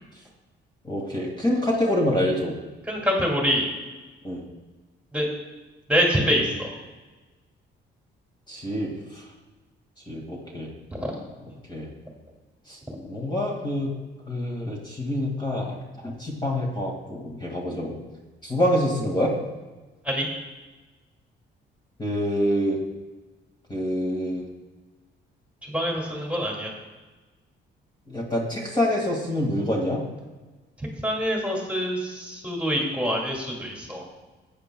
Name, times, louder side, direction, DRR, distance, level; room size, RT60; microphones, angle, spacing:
voice 1, 0.8-2.5 4.2-4.4 8.5-8.9 10.1-10.7 11.7-11.9 12.7-12.8 13.1-13.9 14.3-15.8 16.0-18.0 18.4-19.3 22.0-22.8 23.7-24.4 28.1-30.0, left 1 dB, 20° left, -1 dB, 2.1 m, -26 dB
voice 2, 2.9-3.6 5.1-5.3 5.9-6.7 11.0-11.1 20.0-20.3 25.7-26.7 31.0-34.1, equal, 5° right, -1 dB, 2.4 m, -25 dB
14.5 x 8.9 x 2.3 m, 1.2 s
cardioid pair, 90°, 20 cm